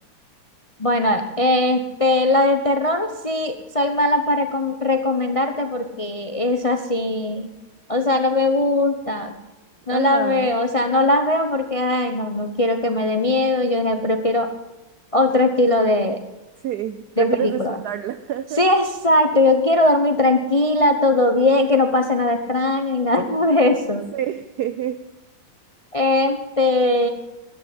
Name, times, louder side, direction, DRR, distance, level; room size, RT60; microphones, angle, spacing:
voice 1, 0.8-7.5 7.9-9.4 9.9-14.5 15.1-16.2 17.2-17.8 18.6-24.0 25.9-27.1, left 2 dB, 60° left, 7 dB, 0.3 m, -20 dB
voice 2, 9.9-10.5 16.6-18.6 24.1-25.0, right 11 dB, 70° right, 12 dB, 0.9 m, -27 dB
13.5 x 9.7 x 8.6 m, 1.0 s
omnidirectional pair, 2.3 m